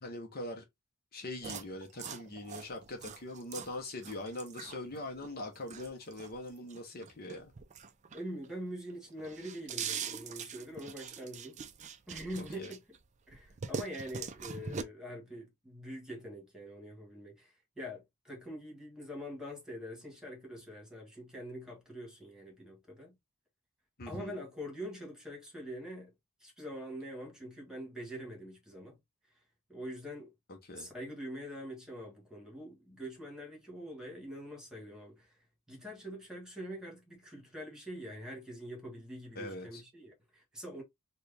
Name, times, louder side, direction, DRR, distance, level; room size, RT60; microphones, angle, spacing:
voice 1, 0.0-0.6 1.1-7.5 12.6-12.7 24.0-24.4 30.5-30.9 39.4-39.8, left 2 dB, 45° left, 0.8 m, -42 dB
sound 1, 1.4-8.5 8.9-13.0 13.3-14.8, right 6 dB, 30° right, 0.4 m, -43 dB
voice 2, 8.1-11.6 12.1-12.8 13.3-23.2 24.1-26.1 26.4-29.0 29.7-30.3 30.7-35.4 35.7-40.8, equal, 5° right, 1.5 m, -44 dB
4.4 x 2.2 x 3.3 m
head